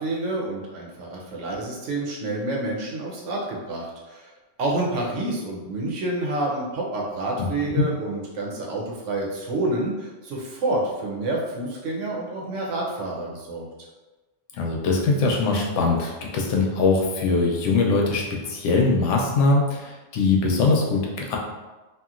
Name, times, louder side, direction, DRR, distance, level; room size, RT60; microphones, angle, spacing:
voice 1, 0.0-4.3 4.6-13.7, right 2 dB, 85° right, -2 dB, 1.0 m, -28 dB
voice 2, 7.4-7.8 14.5-21.4, left 3 dB, 90° left, 0 dB, 0.9 m, -22 dB
2.9 x 2.5 x 2.4 m, 1.2 s
omnidirectional pair, 1.2 m